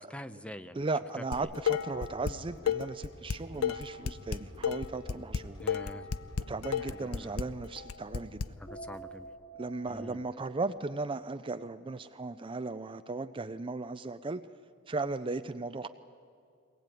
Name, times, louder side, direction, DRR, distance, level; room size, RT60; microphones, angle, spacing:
voice 1, 0.0-0.8 1.4-1.5 5.6-6.1 6.9-7.4 8.6-9.3 9.9-10.2, equal, 5° left, 11 dB, 0.7 m, -45 dB
voice 2, 0.7-5.6 6.5-8.4 9.6-14.4 14.9-15.9, right 3 dB, 25° right, 11 dB, 0.5 m, -36 dB
Dishes pots and pans, 1.3-2.3 2.7-8.5, left 7 dB, 85° left, 0.7 m, -32 dB
sound 1, 1.8-7.2, equal, 65° left, 7.8 m, -57 dB
sound 2, 8.0-12.8, right 2 dB, 40° left, 3.2 m, -51 dB
23.0 x 19.0 x 9.2 m, 2.5 s
head